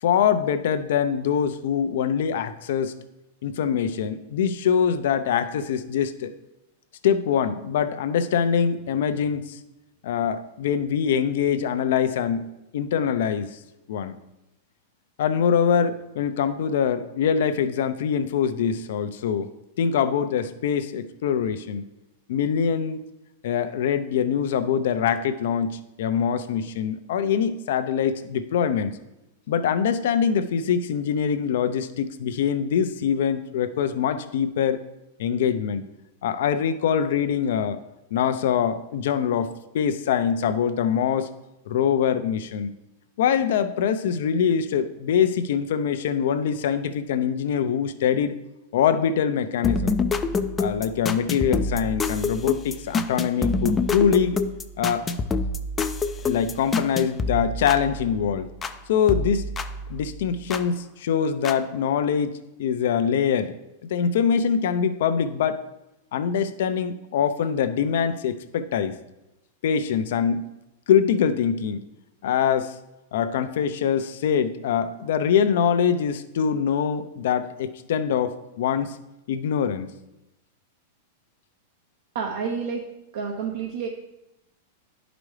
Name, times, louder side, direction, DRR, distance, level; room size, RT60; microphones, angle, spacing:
voice 1, 0.0-3.0 3.4-6.3 7.0-9.6 10.0-12.5 12.7-13.6 13.9-14.2 15.2-19.5 19.8-21.8 22.3-23.0 23.4-29.0 29.5-34.8 35.2-35.8 36.2-37.8 38.1-41.3 41.7-42.7 43.2-48.4 48.7-49.9 50.6-54.4 54.8-55.1 56.2-58.5 58.9-59.5 59.9-63.5 63.9-65.6 66.1-69.0 69.6-70.4 70.9-71.8 72.2-72.8 73.1-79.0 79.3-79.9, left 7 dB, 70° left, 11 dB, 0.6 m, -24 dB
sound 1, 49.6-58.8 59.1-60.7 61.4-61.5, left 3 dB, 15° left, 0.4 m, -27 dB
voice 2, 82.1-82.8 83.1-83.9, right 6 dB, 70° right, 0 dB, 0.8 m, -29 dB
11.0 x 5.0 x 3.3 m, 0.93 s
supercardioid pair, 145°, 0 cm